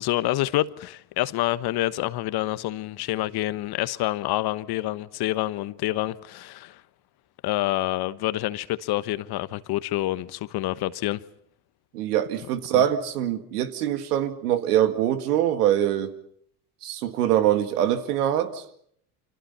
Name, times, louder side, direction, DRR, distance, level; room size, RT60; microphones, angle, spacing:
voice 1, 0.0-6.8 7.4-11.2 12.7-12.8, left 16 dB, 55° left, 1.2 m, -27 dB
voice 2, 11.9-16.1 16.8-18.6, right 11 dB, 80° right, 2.1 m, -23 dB
29.0 x 25.5 x 5.6 m
hypercardioid pair, 80°, 46 cm